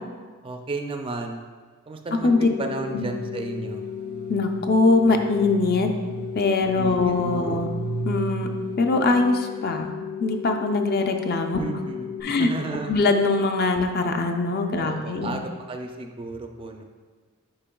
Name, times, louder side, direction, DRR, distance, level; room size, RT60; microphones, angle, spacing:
voice 1, 0.4-1.4 1.9-3.8 6.7-7.6 11.6-12.9 14.7-16.8, right 3 dB, 25° right, 4 dB, 0.4 m, -33 dB
sound 1, 2.2-12.2, left 8 dB, 80° left, 0.8 m, -35 dB
sound 2, 3.0-9.0, right 4 dB, 85° right, 0.9 m, -35 dB
voice 2, 4.3-5.9 6.4-7.7 8.0-8.5 8.8-9.9 10.2-11.6 12.2-12.5 12.9-15.4, left 3 dB, 45° left, 5 dB, 0.5 m, -22 dB
8.7 x 5.2 x 2.3 m, 1.5 s
head